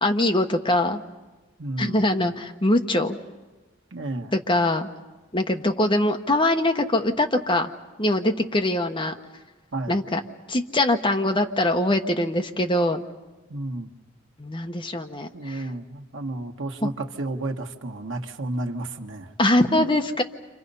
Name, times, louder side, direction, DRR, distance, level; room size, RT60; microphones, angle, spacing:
voice 1, 0.0-1.0 1.8-3.2 4.3-4.9 5.3-7.7 8.0-9.1 9.9-10.2 10.5-13.1 14.4-15.6 16.8-16.9 19.4-20.2, left 1 dB, 25° left, 4 dB, 1.2 m, -23 dB
voice 2, 1.6-2.0 3.9-4.3 9.7-10.0 13.5-13.9 15.3-19.3 19.6-19.9, right 2 dB, 75° right, 4 dB, 1.4 m, -31 dB
29.5 x 26.5 x 5.5 m, 1.2 s
head